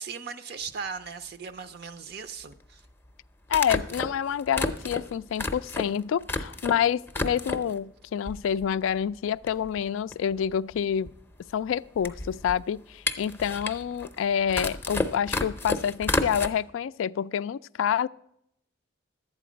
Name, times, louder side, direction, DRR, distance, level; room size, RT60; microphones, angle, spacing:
voice 1, 0.0-2.8, right 5 dB, 50° right, 0.5 m, -38 dB
sound 1, 0.7-0.8 2.5-2.6 3.5-6.8 7.1-7.8 8.3-8.9 9.2-9.3 9.5-16.5, left 2 dB, 10° left, 0.6 m, -31 dB
voice 2, 3.5-11.1 11.5-18.1, left 8 dB, 80° left, 0.3 m, -28 dB
12.0 x 8.5 x 5.0 m
head